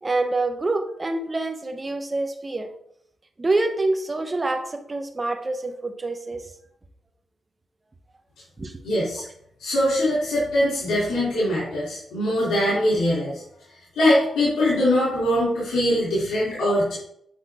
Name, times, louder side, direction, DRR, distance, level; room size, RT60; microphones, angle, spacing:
voice 1, 0.0-2.7 3.4-6.4 8.6-8.8, right 2 dB, 30° right, 6 dB, 1.2 m, -26 dB
voice 2, 8.8-9.2 9.6-13.4 14.0-16.9, left 1 dB, 85° left, -7 dB, 3.3 m, -22 dB
8.7 x 5.6 x 3.8 m, 0.72 s
cardioid pair, 70°, 0 cm